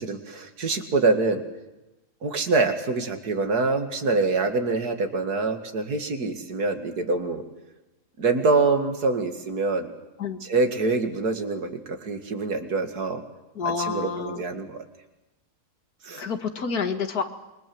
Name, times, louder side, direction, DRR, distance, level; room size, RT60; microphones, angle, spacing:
voice 1, 0.0-1.4 2.2-7.4 8.2-9.9 10.4-13.2 13.8-14.8 16.0-16.2, right 3 dB, 75° right, 7 dB, 2.7 m, -25 dB
voice 2, 13.6-14.4 16.2-17.2, left 5 dB, 70° left, 7 dB, 2.4 m, -28 dB
28.0 x 22.5 x 7.9 m, 1.0 s
omnidirectional pair, 1.7 m